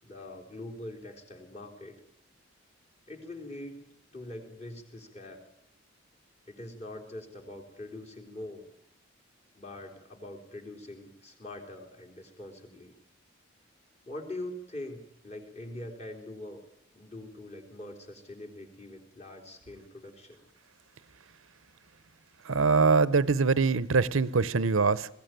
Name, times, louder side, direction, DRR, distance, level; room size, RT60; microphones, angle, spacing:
voice 1, 0.0-2.0 3.1-3.8 4.1-5.4 6.5-8.6 9.5-12.9 14.1-16.6 16.9-20.4, left 1 dB, 30° left, 3.7 m, -43 dB
voice 2, 22.4-25.1, right 4 dB, 80° right, 0.8 m, -23 dB
21.0 x 16.5 x 9.2 m
head